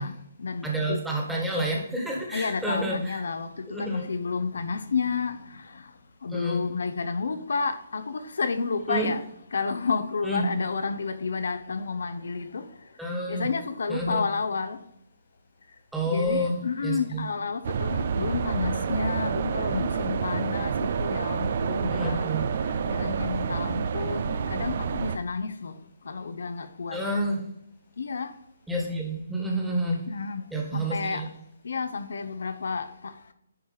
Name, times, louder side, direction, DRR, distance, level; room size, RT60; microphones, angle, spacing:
voice 1, 0.0-1.0 2.3-5.8 6.2-9.2 9.5-12.6 13.3-14.8 16.1-22.3 22.9-25.8 26.0-27.0 28.0-28.3 30.1-30.5 30.7-31.2 31.6-33.1, left 5 dB, 70° left, 0.8 m, -31 dB
voice 2, 0.6-3.2 3.7-4.0 6.3-6.6 8.9-9.1 10.2-10.5 13.0-13.5 13.9-14.2 15.9-16.6 16.8-17.2 21.9-22.4 26.9-27.5 28.7-30.1 30.5-31.3, right 1 dB, 5° right, 1.6 m, -29 dB
sound 1, 17.6-25.2, right 6 dB, 50° right, 0.5 m, -28 dB
9.9 x 4.6 x 3.4 m
figure-of-eight pair, 145°, 0 cm